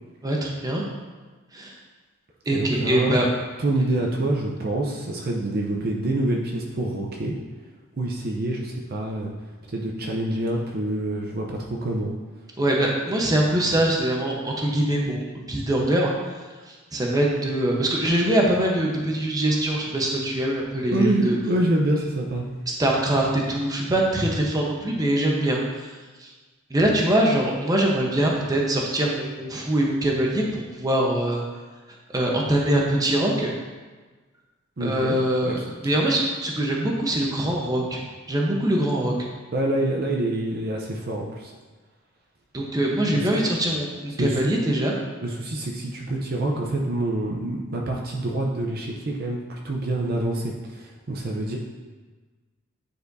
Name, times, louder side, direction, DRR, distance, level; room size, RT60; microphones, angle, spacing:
voice 1, 0.2-0.9 1.5-1.7 2.5-3.3 12.6-16.1 16.7-21.3 22.8-25.9 26.2-26.3 26.7-31.4 32.1-33.5 34.8-38.0 38.3-39.1 42.5-44.9, right 1 dB, 20° right, -2 dB, 0.9 m, -23 dB
voice 2, 2.5-3.2 3.6-7.4 8.0-9.3 9.7-12.1 20.9-22.5 34.8-35.5 39.5-41.5 43.1-43.2 44.2-44.8 45.2-51.6, right 1 dB, 50° right, -1 dB, 0.6 m, -26 dB
9.6 x 4.2 x 2.6 m, 1.3 s
head